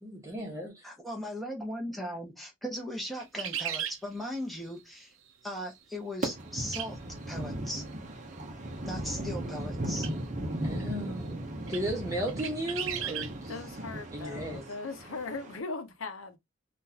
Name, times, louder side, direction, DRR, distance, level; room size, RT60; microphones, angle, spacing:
voice 1, 0.0-0.7 10.6-13.6 14.1-14.7, equal, 15° right, 1.3 m, -35 dB
voice 2, 0.8-5.1 5.4-7.0 7.3-7.8 8.8-10.1, equal, ahead, 1.0 m, -38 dB
sound 1, 3.2-4.0 6.7-6.9 7.2-7.3 10.0-10.1 10.8-10.9 11.7-11.8 12.3-13.3, right 9 dB, 80° right, 0.6 m, -35 dB
sound 2, 6.2-15.6, right 1 dB, 35° right, 0.7 m, -37 dB
voice 3, 13.3-16.4, left 3 dB, 90° left, 0.7 m, -39 dB
3.7 x 2.5 x 2.8 m
head